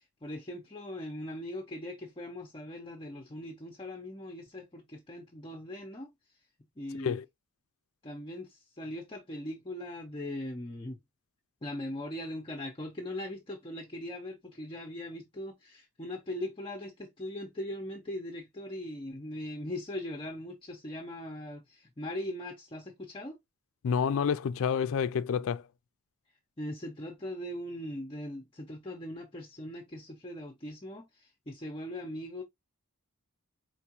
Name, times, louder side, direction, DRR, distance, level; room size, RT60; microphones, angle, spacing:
voice 1, 0.0-6.1 6.8-7.2 8.0-11.0 11.6-23.4 26.6-32.4, left 1 dB, 25° left, 0.6 m, -40 dB
voice 2, 23.8-25.7, left 6 dB, 65° left, 0.4 m, -29 dB
4.5 x 3.5 x 2.9 m
head